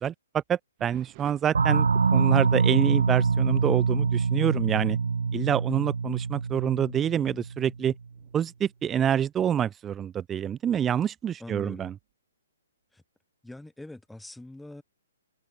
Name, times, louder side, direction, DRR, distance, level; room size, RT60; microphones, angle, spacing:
voice 1, 0.0-5.0 5.3-7.9 8.3-11.9, right 9 dB, 15° right, 0.9 m, -27 dB
sound 1, 0.8-4.9 5.3-5.6 6.2-6.3 7.1-9.8 11.6-12.1, right 40 dB or more, 35° right, 4.7 m, -56 dB
sound 2, 1.5-7.9, right 5 dB, 75° right, 0.4 m, -25 dB
voice 2, 11.4-11.9 12.9-13.0 13.4-14.8, left 1 dB, 5° left, 3.2 m, -43 dB
open air
figure-of-eight pair, 130°, 0 cm